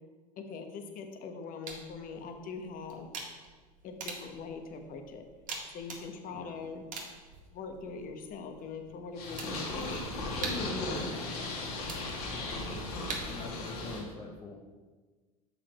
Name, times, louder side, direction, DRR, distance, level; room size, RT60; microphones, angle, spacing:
voice 1, 0.4-3.1 3.8-5.2 5.7-6.9 7.5-10.0 10.4-11.5, left 4 dB, 45° left, 5 dB, 1.1 m, -42 dB
sound 1, 1.7-13.7, right 3 dB, 40° right, 1.7 m, -46 dB
Purr, 9.2-14.0, left 2 dB, 75° left, 2.0 m, -36 dB
voice 2, 13.3-14.6, left 3 dB, 25° left, -1 dB, 1.1 m, -44 dB
7.0 x 5.4 x 4.3 m, 1.3 s
hypercardioid pair, 75°, 20 cm